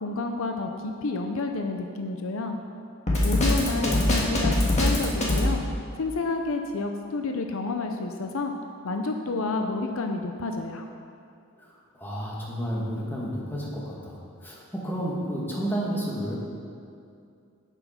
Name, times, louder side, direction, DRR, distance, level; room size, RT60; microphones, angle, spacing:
voice 1, 0.0-2.6 3.2-5.6 6.0-8.5 8.8-10.9, left 3 dB, 65° left, 4 dB, 0.6 m, -30 dB
Drum kit, 3.1-5.5, left 1 dB, 30° left, 1.7 m, -22 dB
voice 2, 3.4-4.0 11.6-16.3, equal, 10° left, -5 dB, 1.7 m, -32 dB
8.3 x 7.8 x 5.7 m, 2.4 s
head